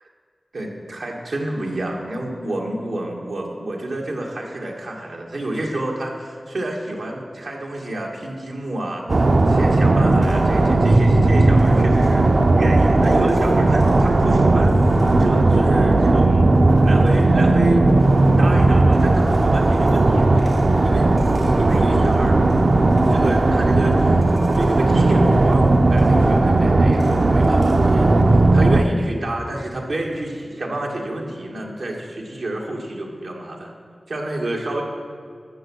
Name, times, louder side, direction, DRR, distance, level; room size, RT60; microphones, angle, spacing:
voice 1, 0.5-12.3 12.6-14.7 15.2-16.5 16.8-17.9 18.4-22.4 23.1-24.2 24.5-33.7 34.1-34.8, right 1 dB, 85° right, -1 dB, 1.7 m, -29 dB
sound 1, 9.1-28.8, right 2 dB, 60° right, 0.6 m, -16 dB
13.0 x 7.1 x 6.3 m, 2.2 s
wide cardioid pair, 55°, 0 cm